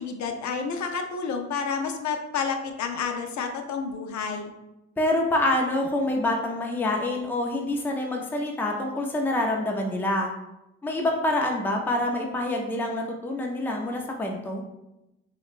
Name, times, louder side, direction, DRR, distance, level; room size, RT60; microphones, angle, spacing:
voice 1, 0.0-4.5, left 5 dB, 70° left, 4 dB, 0.5 m, -30 dB
voice 2, 5.0-10.3 10.8-14.6, left 1 dB, 5° left, 1 dB, 0.3 m, -26 dB
4.9 x 2.1 x 2.4 m, 0.92 s
cardioid pair, 135°, 30 cm